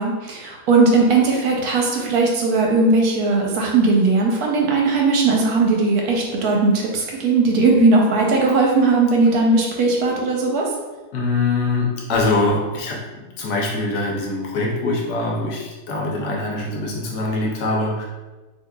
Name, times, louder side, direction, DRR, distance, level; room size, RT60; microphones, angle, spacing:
voice 1, 0.0-10.7, right 3 dB, 75° right, 0 dB, 1.1 m, -18 dB
voice 2, 11.1-18.0, left 2 dB, 75° left, -2 dB, 1.2 m, -23 dB
3.9 x 2.8 x 2.2 m, 1.2 s
omnidirectional pair, 1.8 m